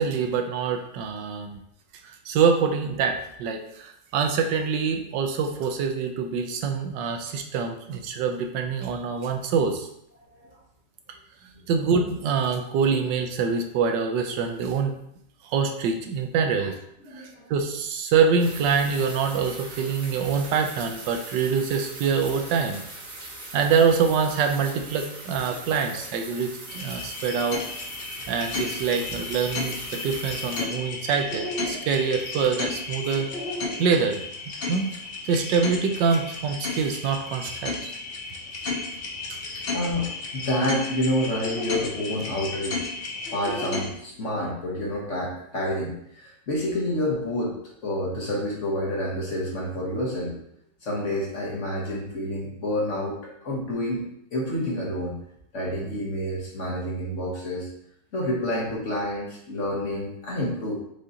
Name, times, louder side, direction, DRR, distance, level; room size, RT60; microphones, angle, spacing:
voice 1, 0.0-1.6 2.3-9.9 11.7-14.9 15.5-16.7 17.5-22.8 23.5-27.6 28.3-33.3 33.8-34.2 34.7-34.9 35.2-37.9, right 6 dB, 80° right, 4 dB, 1.2 m, -25 dB
voice 2, 17.0-17.4 25.5-25.8 31.7-31.8 39.7-40.1 40.3-42.8 43.3-50.3 50.8-53.2 53.4-54.0 54.3-55.1 55.5-57.7 58.1-60.8, left 1 dB, 50° left, -4 dB, 1.1 m, -28 dB
sound 1, 18.4-30.6, right 2 dB, 50° right, 1.5 m, -41 dB
sound 2, 26.7-43.9, left 3 dB, 70° left, 0.5 m, -33 dB
4.8 x 2.8 x 3.8 m, 0.74 s
omnidirectional pair, 2.0 m